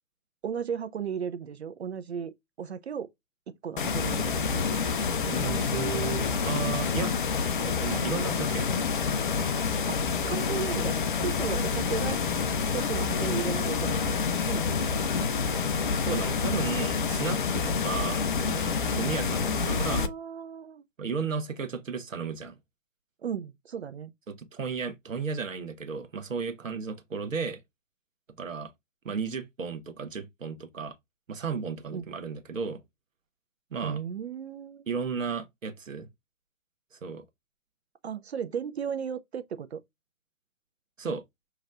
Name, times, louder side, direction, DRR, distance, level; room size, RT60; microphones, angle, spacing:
voice 1, 0.4-2.3 2.6-3.1 3.5-4.7 9.9-12.2 12.7-15.1 19.7-20.8 23.2-24.1 31.9-32.0 33.8-34.8 38.0-39.8, right 7 dB, 50° right, 0.6 m, -35 dB
sound 1, 3.8-20.1, left 5 dB, 40° left, 0.6 m, -28 dB
voice 2, 5.2-7.1 7.6-8.7 15.9-20.0 21.0-22.6 24.3-27.6 28.4-28.7 29.0-30.9 31.3-32.8 33.7-34.0 34.9-36.1 36.9-37.2 41.0-41.2, right 5 dB, 70° right, 1.0 m, -34 dB
6.5 x 3.1 x 2.5 m
figure-of-eight pair, 135°, 40 cm